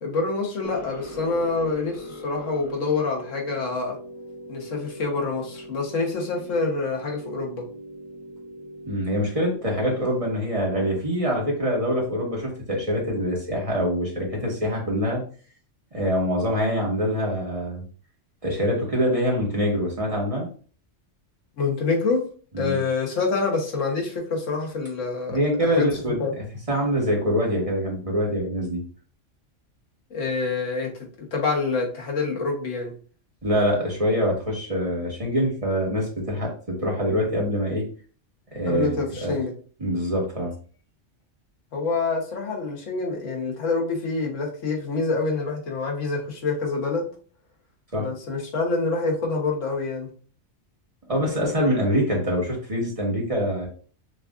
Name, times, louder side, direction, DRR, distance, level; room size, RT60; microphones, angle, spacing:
voice 1, 0.0-4.0 4.5-7.6 21.6-22.2 22.6-25.4 25.6-25.9 26.2-26.3 30.1-32.9 38.6-39.5 41.7-47.0 48.0-50.1, left 3 dB, 90° left, 0 dB, 1.4 m, -26 dB
sound 1, 0.6-11.5, equal, 30° left, 0.3 m, -41 dB
voice 2, 8.9-15.2 15.9-17.8 18.4-20.5 22.5-22.8 25.3-26.2 26.7-28.8 33.4-36.5 36.8-37.8 38.5-38.9 39.2-39.3 39.8-40.5 47.9-48.1 51.1-53.7, equal, 30° right, -2 dB, 1.3 m, -24 dB
6.3 x 2.5 x 2.4 m, 0.41 s
omnidirectional pair, 1.3 m